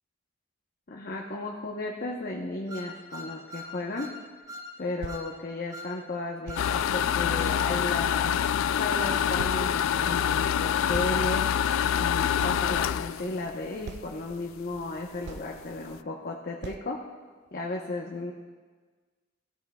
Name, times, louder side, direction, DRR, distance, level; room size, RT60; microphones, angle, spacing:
voice 1, 0.9-4.1 4.8-8.3 8.8-11.5 11.9-17.0 17.5-18.3, left 2 dB, 50° left, -1 dB, 0.9 m, -34 dB
sound 1, 2.7-4.2 4.5-4.7 5.1-5.3 5.7-5.9 6.5-6.7 7.3-7.6, left 2 dB, 20° right, 1.0 m, -41 dB
sound 2, 4.4-4.5 5.0-5.2 6.5-6.7 7.5-7.6 8.0-8.7 9.0-9.1 9.4-9.6 10.9-11.2 11.5-11.6 12.4-12.6 13.3-13.4 13.8-14.2 14.9-15.0 15.3-15.6 16.0-16.1 16.6-16.9 17.5-17.6, right 5 dB, 60° right, 0.3 m, -40 dB
sound 3, 6.6-14.3 14.7-14.8 15.2-15.3 15.5-15.9, left 9 dB, 85° left, 0.3 m, -26 dB
17.0 x 13.5 x 2.3 m, 1.4 s
head